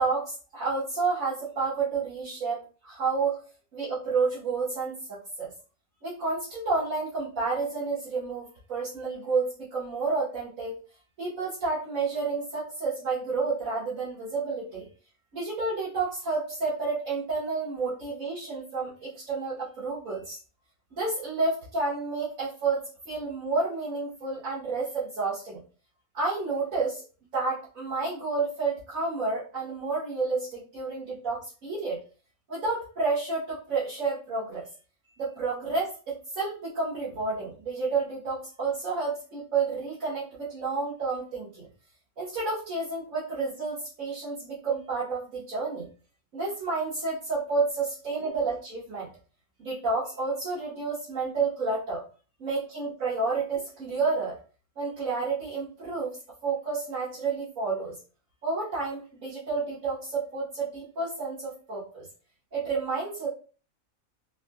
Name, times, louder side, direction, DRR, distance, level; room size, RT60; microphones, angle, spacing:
voice 1, 0.0-2.6 2.8-3.4 3.7-5.5 6.0-10.8 11.2-14.9 15.3-20.4 20.9-25.6 26.1-27.0 27.3-32.0 32.5-34.6 35.2-41.7 42.2-45.9 46.3-49.1 49.6-52.0 52.4-54.4 54.8-56.2 56.4-57.9 58.4-62.1 62.5-63.3, right 4 dB, 85° right, -9 dB, 2.0 m, -30 dB
4.2 x 2.8 x 2.5 m, 0.37 s
omnidirectional pair, 1.4 m